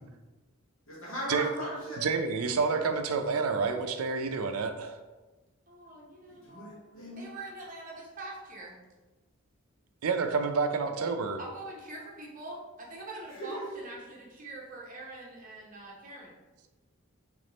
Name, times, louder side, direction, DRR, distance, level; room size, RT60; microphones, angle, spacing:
voice 1, 0.9-2.0 6.3-7.3 13.3-13.6, equal, 70° left, -7 dB, 1.3 m, -38 dB
voice 2, 2.0-5.0 10.0-11.4, right 4 dB, 90° right, 7 dB, 0.4 m, -29 dB
voice 3, 5.7-6.8 7.2-8.8 11.4-16.4, right 2 dB, 40° right, -2 dB, 0.9 m, -44 dB
3.5 x 3.2 x 3.9 m, 1.2 s
head